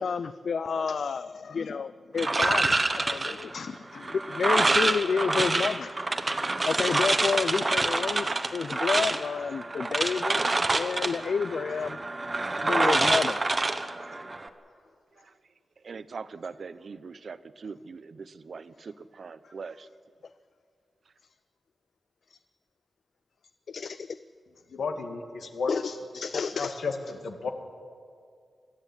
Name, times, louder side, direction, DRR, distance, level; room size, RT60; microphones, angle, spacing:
voice 1, 0.0-6.4 6.6-12.0 12.6-13.4 14.0-14.1 22.3-22.4 23.7-24.2 25.7-26.7, left 5 dB, 65° left, 13 dB, 0.5 m, -30 dB
sound 1, 2.2-14.5, right 2 dB, 25° right, 1.1 m, -27 dB
voice 2, 15.8-19.9, right 5 dB, 55° right, 14 dB, 0.7 m, -42 dB
voice 3, 24.7-25.7 26.6-26.9 27.2-27.5, left 4 dB, 80° left, 5 dB, 2.1 m, -32 dB
22.5 x 13.5 x 9.8 m, 2.2 s
wide cardioid pair, 145°, 0 cm